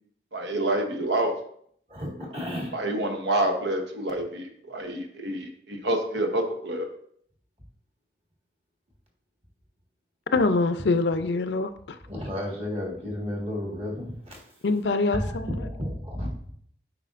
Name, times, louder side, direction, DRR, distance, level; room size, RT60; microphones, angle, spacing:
voice 1, 0.3-1.3 2.7-6.9, right 1 dB, 80° right, 5 dB, 0.9 m, -27 dB
voice 2, 1.9-2.7 12.1-14.4 15.6-16.3, left 1 dB, 35° right, -1 dB, 1.6 m, -33 dB
voice 3, 10.3-12.0 14.6-15.7, left 3 dB, 80° left, 10 dB, 0.5 m, -24 dB
8.9 x 4.9 x 2.5 m, 0.65 s
head